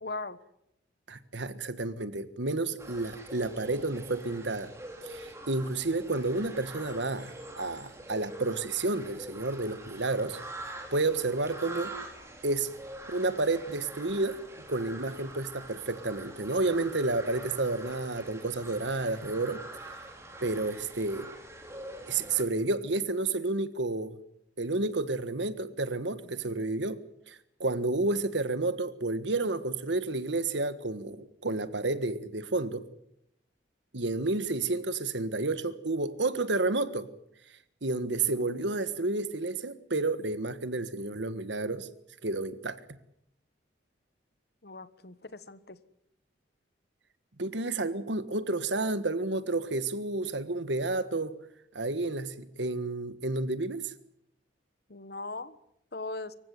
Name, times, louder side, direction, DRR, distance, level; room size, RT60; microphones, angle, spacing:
voice 1, 0.0-0.4 44.6-45.8 54.9-55.6 55.9-56.3, left 3 dB, 55° left, 1.3 m, -39 dB
voice 2, 1.1-4.7 5.0-11.9 12.4-12.7 13.1-14.4 14.7-19.8 20.4-21.3 22.1-24.2 24.6-27.0 27.3-32.8 33.9-37.1 37.8-41.9 42.2-42.8 47.4-51.3 51.7-53.9, right 2 dB, 70° right, 1.6 m, -31 dB
sound 1, 2.8-22.4, right 1 dB, 15° right, 4.0 m, -45 dB
25.5 x 15.5 x 9.5 m
head